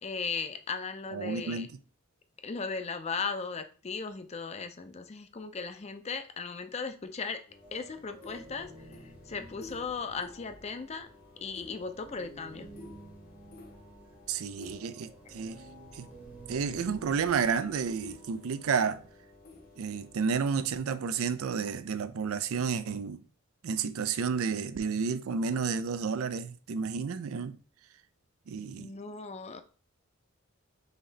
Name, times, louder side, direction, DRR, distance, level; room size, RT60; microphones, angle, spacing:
voice 1, 0.0-1.7 2.4-7.4 7.7-8.7 9.0-11.1 11.4-12.7 28.8-29.6, left 5 dB, 30° left, 0.4 m, -37 dB
voice 2, 1.1-1.7 14.3-15.6 15.9-16.1 16.5-19.0 19.8-23.2 23.6-27.6 28.5-28.9, right 6 dB, 85° right, 0.4 m, -31 dB
sound 1, 7.5-20.4, left 2 dB, 45° left, 0.8 m, -53 dB
sound 2, 7.6-20.4, right 1 dB, 10° right, 0.8 m, -52 dB
4.1 x 3.1 x 3.9 m
head